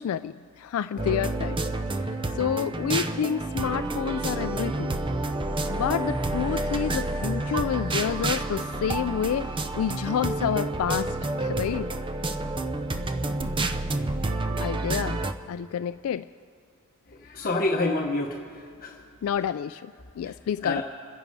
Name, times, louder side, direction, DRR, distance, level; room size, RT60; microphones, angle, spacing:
voice 1, 0.0-1.6 1.9-5.0 5.7-11.9 14.6-15.2 15.5-16.3 19.2-20.8, left 8 dB, 70° left, 12 dB, 0.3 m, -29 dB
sound 1, 1.0-15.3, right 2 dB, 25° right, 0.6 m, -29 dB
voice 2, 17.2-19.0 20.2-20.3 20.6-20.8, left 2 dB, 40° left, 1 dB, 0.9 m, -28 dB
26.5 x 9.1 x 5.3 m, 2.3 s
head